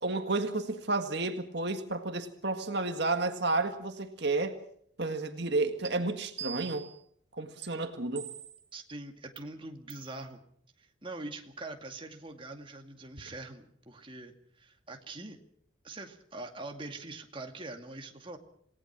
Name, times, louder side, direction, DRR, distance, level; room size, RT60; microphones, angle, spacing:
voice 1, 0.0-4.6 5.0-6.9 7.4-8.3, right 3 dB, 55° right, 7 dB, 1.8 m, -31 dB
sound 1, 5.8-5.9 6.4-7.0 7.6-7.7 8.2-8.7 9.4-9.5 9.9-10.1, right 11 dB, 75° right, 2.1 m, -42 dB
voice 2, 8.7-10.4 10.8-15.4 15.8-18.4, right 2 dB, 25° right, 4 dB, 2.3 m, -43 dB
28.0 x 18.5 x 6.1 m, 0.65 s
head